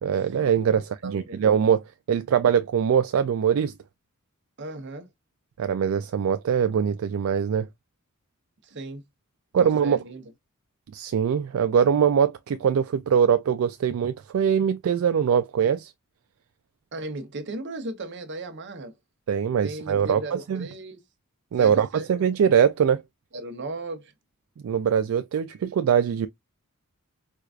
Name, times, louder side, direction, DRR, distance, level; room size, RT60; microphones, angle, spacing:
voice 1, 0.0-3.7 5.6-7.7 9.5-10.0 10.9-15.9 19.3-20.7 21.5-23.0 24.6-26.3, right 7 dB, 70° right, 0.3 m, -22 dB
voice 2, 0.8-1.4 4.6-5.1 8.6-9.0 9.6-10.2 16.9-18.9 19.6-21.0 21.5-22.1 23.3-24.1, right 2 dB, 55° right, 0.8 m, -36 dB
4.6 x 2.4 x 2.2 m
head